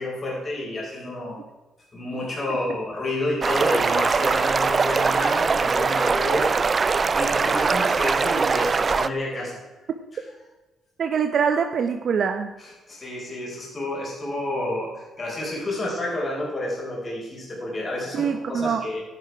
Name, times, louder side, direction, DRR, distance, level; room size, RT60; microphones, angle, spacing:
voice 1, 0.0-1.4 1.9-6.7 7.1-9.6 12.6-19.0, left 1 dB, 30° left, -3 dB, 4.5 m, -30 dB
sound 1, 3.4-9.1, right 5 dB, 35° right, 0.4 m, -22 dB
voice 2, 11.0-12.5 18.1-18.9, right 6 dB, 55° right, 7 dB, 0.8 m, -24 dB
11.5 x 10.0 x 4.7 m, 1.1 s
cardioid pair, 90°, 0 cm